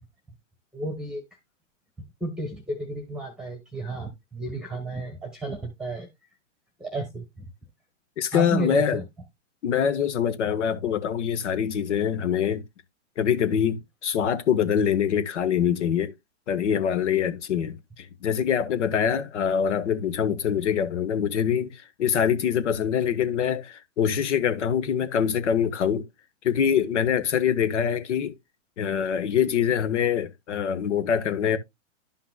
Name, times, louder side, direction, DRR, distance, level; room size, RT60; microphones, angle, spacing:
voice 1, 0.7-1.2 2.2-6.1 6.8-7.4 8.3-9.0, right 2 dB, ahead, 1.1 m, -32 dB
voice 2, 8.2-9.0 9.6-12.6 13.2-16.1 16.5-26.1 26.4-28.3 28.8-31.6, left 8 dB, 70° left, 1.2 m, -24 dB
11.5 x 5.8 x 2.2 m
hypercardioid pair, 125°, 37 cm